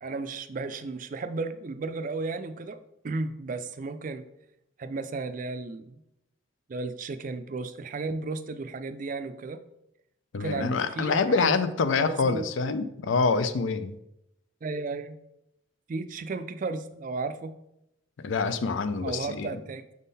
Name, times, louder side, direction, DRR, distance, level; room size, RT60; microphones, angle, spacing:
voice 1, 0.0-2.8 3.0-4.2 4.8-6.0 6.7-9.6 10.4-11.5 12.0-12.5 14.6-15.2 15.9-17.5 19.0-19.8, right 3 dB, 40° right, 10 dB, 0.3 m, -34 dB
voice 2, 10.3-14.0 18.2-19.6, left 4 dB, 70° left, 11 dB, 0.4 m, -26 dB
6.2 x 3.7 x 4.1 m, 0.83 s
head